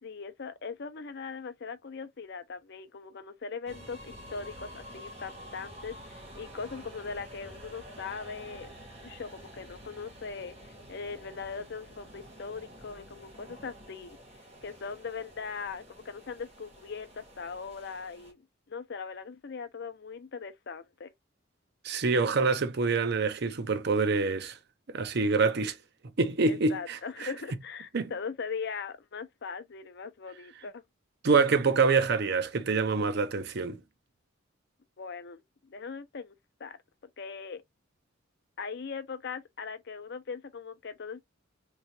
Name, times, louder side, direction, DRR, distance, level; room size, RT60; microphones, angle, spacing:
voice 1, 0.0-8.7 9.0-14.2 14.6-21.1 26.5-30.8 35.0-36.3 36.6-36.8 37.2-37.6 38.6-41.2, left 5 dB, 55° left, 0.6 m, -40 dB
sound 1, 3.7-18.3, equal, 30° right, 1.3 m, -49 dB
voice 2, 21.8-24.6 24.9-25.8 26.2-27.3 27.9-28.1 31.2-33.8, right 4 dB, 55° right, 0.6 m, -26 dB
3.7 x 3.1 x 2.7 m
head